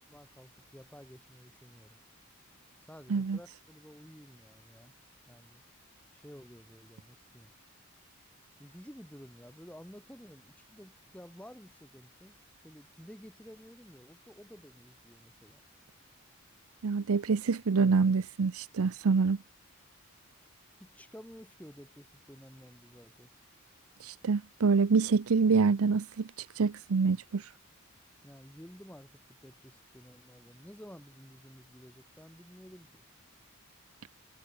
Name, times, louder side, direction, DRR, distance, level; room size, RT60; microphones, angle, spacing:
voice 1, 0.0-2.0 2.8-4.9 5.3-5.6 6.1-7.5 8.6-12.4 12.6-15.6 20.4-20.5 20.8-23.3 28.2-33.0, equal, 5° left, 6.8 m, -52 dB
voice 2, 16.8-19.4 24.0-27.5, right 5 dB, 75° right, 0.5 m, -26 dB
head